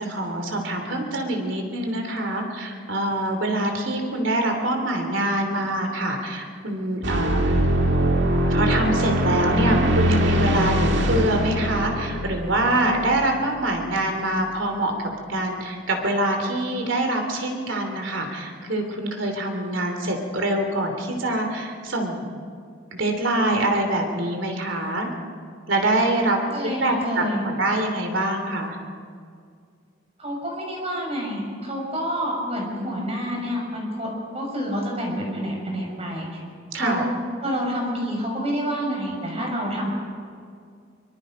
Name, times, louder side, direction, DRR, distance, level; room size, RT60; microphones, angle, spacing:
voice 1, 0.0-7.6 8.5-22.2 22.9-25.1 25.7-28.8 36.7-37.0, right 1 dB, 85° right, 4 dB, 3.1 m, -25 dB
sound 1, 7.0-13.7, right 1 dB, 70° right, 2.0 m, -22 dB
voice 2, 26.5-27.4 30.2-36.3 36.8-37.0 37.4-39.9, equal, 30° right, -1 dB, 6.0 m, -28 dB
24.5 x 24.0 x 5.2 m, 2.2 s
head